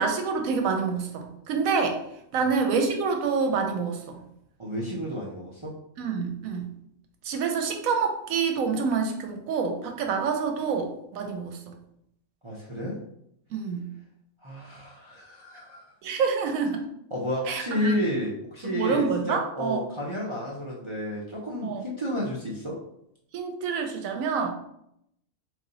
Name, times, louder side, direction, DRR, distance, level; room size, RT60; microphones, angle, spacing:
voice 1, 0.0-2.0 2.3-4.2 6.0-6.7 7.2-11.7 13.5-13.9 16.0-16.8 17.5-18.0 18.6-19.8 21.6-21.8 23.3-24.5, right 5 dB, 85° right, 4 dB, 1.0 m, -27 dB
voice 2, 4.6-5.7 12.4-13.0 14.4-15.8 17.1-22.8, left 1 dB, 50° right, -5 dB, 0.3 m, -31 dB
3.2 x 2.5 x 3.9 m, 0.76 s
omnidirectional pair, 1.4 m